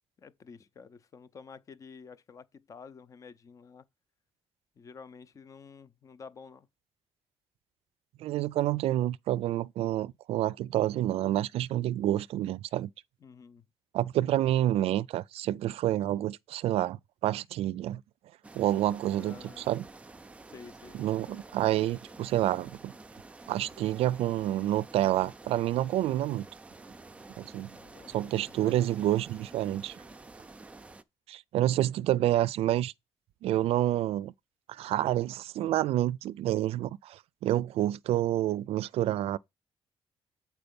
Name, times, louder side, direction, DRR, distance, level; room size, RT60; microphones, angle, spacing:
voice 1, 0.2-3.8 4.8-6.7 13.2-13.7 19.1-19.7 20.5-21.4 27.7-28.8, left 5 dB, 35° left, 0.6 m, -50 dB
voice 2, 8.2-12.9 13.9-18.0 18.5-19.8 20.9-22.9 23.5-26.5 27.4-27.7 28.1-30.0 31.3-32.9 33.4-34.3 34.7-39.4, right 13 dB, 90° right, 0.4 m, -28 dB
sound 1, 18.4-31.0, right 3 dB, 15° right, 0.4 m, -50 dB
7.9 x 4.6 x 5.2 m
cardioid pair, 175°, 10 cm